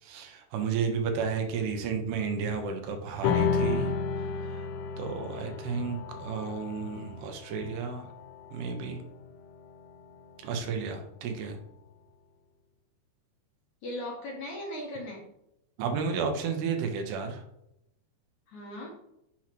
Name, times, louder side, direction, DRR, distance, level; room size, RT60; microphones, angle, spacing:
voice 1, 0.0-3.9 4.5-4.6 5.0-8.1 8.5-9.0 10.4-11.6 15.8-17.4, right 5 dB, 85° right, 4 dB, 3.0 m, -32 dB
sound 1, 3.2-10.0, left 5 dB, 90° left, 2.9 m, -32 dB
voice 2, 13.8-15.3 18.5-18.9, left 1 dB, 60° left, -1 dB, 2.2 m, -38 dB
7.2 x 3.1 x 5.9 m, 0.82 s
omnidirectional pair, 4.7 m